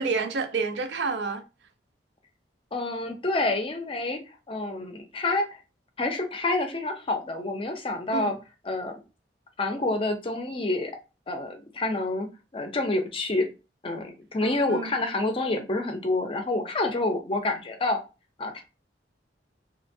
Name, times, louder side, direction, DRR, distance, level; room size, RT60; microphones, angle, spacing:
voice 1, 0.0-1.4 8.1-8.4 14.4-14.9, right 4 dB, 75° right, 0.4 m, -29 dB
voice 2, 2.7-5.6 6.0-8.4 8.6-9.0 9.6-10.9 11.3-13.5 13.8-18.0 18.4-18.6, left 2 dB, 30° left, 0.5 m, -28 dB
2.8 x 2.2 x 2.6 m
head